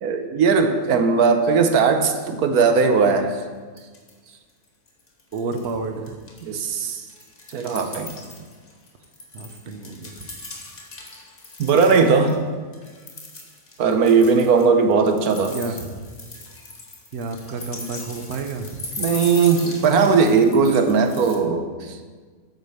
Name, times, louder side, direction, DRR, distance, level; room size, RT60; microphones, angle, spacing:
voice 1, 0.0-3.4 6.4-7.0 7.5-8.1 11.6-12.4 13.8-15.5 19.0-21.9, right 5 dB, 85° right, 7 dB, 1.3 m, -18 dB
sound 1, 3.4-3.5 3.8-4.3 4.6-5.8 6.1-12.3 12.7-21.4, left 2 dB, 40° left, 1.6 m, -39 dB
voice 2, 5.3-6.1 9.3-10.3 15.5-15.9 17.1-18.8, right 3 dB, 50° right, 6 dB, 1.0 m, -30 dB
8.2 x 6.8 x 6.6 m, 1.5 s
omnidirectional pair, 1.5 m